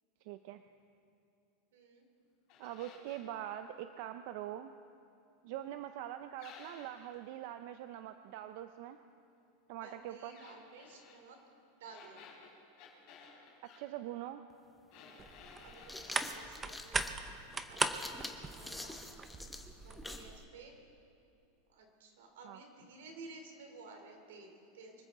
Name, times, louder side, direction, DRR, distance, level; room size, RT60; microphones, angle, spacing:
voice 1, 0.2-0.6 2.6-4.7 5.4-9.0 9.7-10.4 13.6-14.4 22.4-22.6, right 12 dB, 55° right, 9 dB, 0.5 m, -43 dB
voice 2, 1.7-2.1 9.8-11.4 11.8-12.3 14.9-15.3 15.6-17.1 17.7-19.0 19.8-20.7 21.7-24.9, right 3 dB, 85° right, 3 dB, 3.1 m, -54 dB
sound 1, 2.5-3.3 6.4-7.2 10.3-11.2 11.9-13.8 14.9-16.2 16.7-17.3 17.6-17.9, left 5 dB, 45° left, 4.1 m, -56 dB
sound 2, 14.5-14.6 15.6-20.3, left 2 dB, 5° left, 1.0 m, -47 dB
sound 3, 15.2-20.4, right 4 dB, 15° right, 0.7 m, -39 dB
24.5 x 14.5 x 3.7 m, 2.8 s
supercardioid pair, 145°, 0 cm